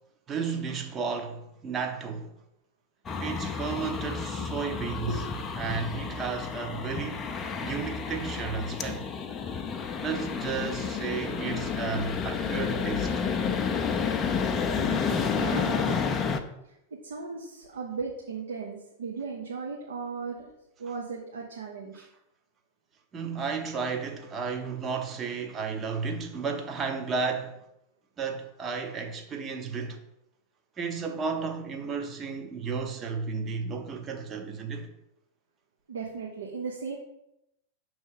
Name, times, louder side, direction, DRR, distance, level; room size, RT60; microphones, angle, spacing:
voice 1, 0.3-2.3 3.2-5.2 5.6-7.3 7.6-9.1 10.0-13.1 21.9-22.1 23.1-27.6 28.2-30.0 30.8-34.9, right 5 dB, 25° right, 0.8 m, -33 dB
sound 1, 3.1-16.4, left 6 dB, 25° left, 0.5 m, -30 dB
voice 2, 14.8-16.2 16.6-16.8 17.0-20.5 20.8-22.1 35.9-37.0, right 5 dB, 65° right, 0.8 m, -37 dB
6.2 x 3.2 x 5.6 m
figure-of-eight pair, 90°, 0 cm